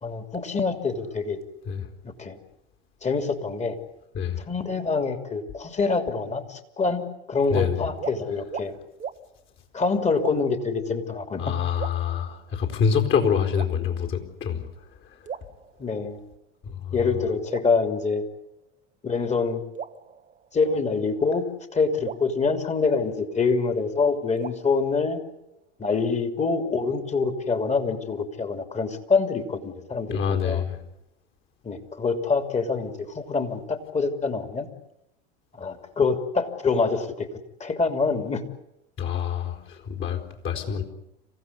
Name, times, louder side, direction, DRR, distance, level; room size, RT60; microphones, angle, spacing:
voice 1, 0.0-1.4 2.0-2.4 3.0-3.8 4.5-7.0 7.3-8.7 9.7-11.6 15.8-16.2 16.9-18.2 19.0-19.6 20.5-21.4 21.7-25.2 25.8-30.6 31.6-34.7 35.5-38.4, left 4 dB, 20° left, 7 dB, 3.0 m, -25 dB
voice 2, 7.5-7.8 11.4-14.7 16.6-16.9 30.1-30.8 39.0-40.8, left 7 dB, 35° left, 4 dB, 4.4 m, -26 dB
sound 1, 7.5-7.7 8.0-8.2 8.5-8.7 9.0-9.2 10.2-10.6 11.8-12.6 13.5-14.3 15.3-16.2 17.5-18.6 19.7-20.9 22.0-23.5 24.4-25.6, right 7 dB, 20° right, 1.1 m, -40 dB
27.5 x 16.0 x 9.7 m, 0.86 s
hypercardioid pair, 90°, 35 cm